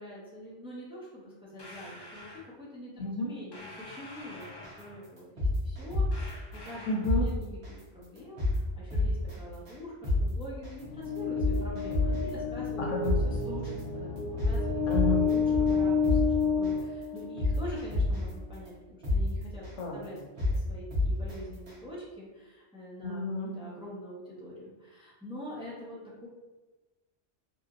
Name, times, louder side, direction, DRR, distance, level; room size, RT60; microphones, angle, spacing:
voice 1, 0.0-5.3 5.6-12.8 13.2-14.8 15.3-18.7 19.1-19.6 19.9-20.2 20.5-23.2 23.5-26.3, left 1 dB, 5° right, -6 dB, 0.6 m, -44 dB
sound 1, 1.6-2.5 3.5-5.1 6.1-7.2, left 1 dB, 35° left, 0.4 m, -47 dB
sound 2, 4.6-4.8 5.2-6.3 6.7-6.8 7.0-7.2 7.6-7.8 8.2-8.6 8.9-9.3 9.7-9.8 10.0-10.2 10.6-10.8 11.2-12.3 12.7-12.8 13.0-13.2 13.6-13.8 14.2-14.5 14.9-15.8 16.0-16.2 16.6-16.8 17.2-18.3 18.7-18.8 19.0-19.2 19.6-19.8 20.2-20.6 20.9-21.3 21.7-21.8, left 3 dB, 60° right, 1.3 m, -28 dB
voice 2, 6.9-7.3 12.8-13.1 14.9-15.2 19.8-20.0 23.0-23.5, left 2 dB, 90° left, -1 dB, 1.1 m, -30 dB
sound 3, 10.8-17.7, left 5 dB, 65° left, 1.3 m, -30 dB
3.4 x 2.9 x 2.5 m, 1.2 s
omnidirectional pair, 1.2 m